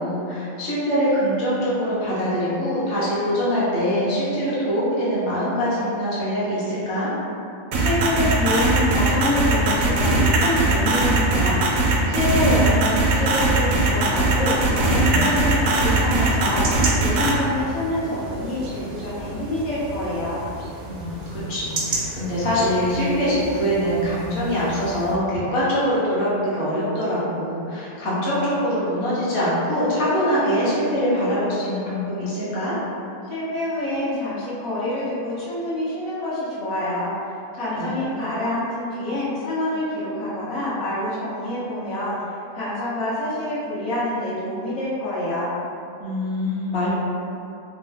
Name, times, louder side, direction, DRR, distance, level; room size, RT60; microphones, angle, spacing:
voice 1, 0.0-7.1 15.0-15.4 20.9-32.7 37.7-38.0 46.0-46.9, equal, 55° left, -10 dB, 1.1 m, -23 dB
voice 2, 7.7-16.6 16.9-20.4 33.3-42.1 42.5-45.5, left 1 dB, 75° left, -10 dB, 1.3 m, -26 dB
sound 1, 7.7-17.3, right 2 dB, 80° right, 1.0 m, -19 dB
sound 2, 14.9-25.2, right 2 dB, 60° right, 0.7 m, -34 dB
3.5 x 2.2 x 3.3 m, 2.6 s
omnidirectional pair, 1.5 m